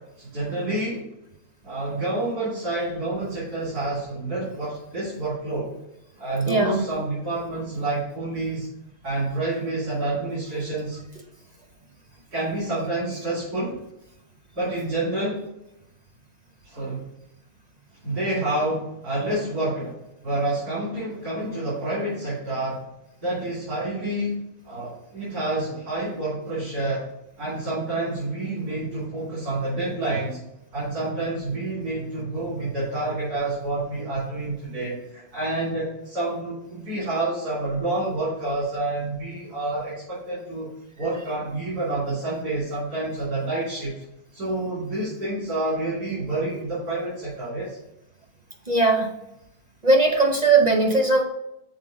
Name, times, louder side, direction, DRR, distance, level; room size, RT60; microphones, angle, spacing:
voice 1, 0.2-1.0 1.6-5.7 6.2-8.7 9.0-11.0 12.3-13.8 14.5-15.5 16.6-17.0 18.0-20.0 20.2-22.8 23.2-27.0 27.4-30.4 30.7-40.7 41.0-44.0 44.3-47.8, right 2 dB, 90° right, -9 dB, 3.1 m, -28 dB
voice 2, 6.5-6.8 48.7-49.1 49.8-51.2, right 3 dB, 35° right, 3 dB, 0.7 m, -19 dB
6.4 x 4.5 x 5.0 m, 0.86 s
omnidirectional pair, 1.6 m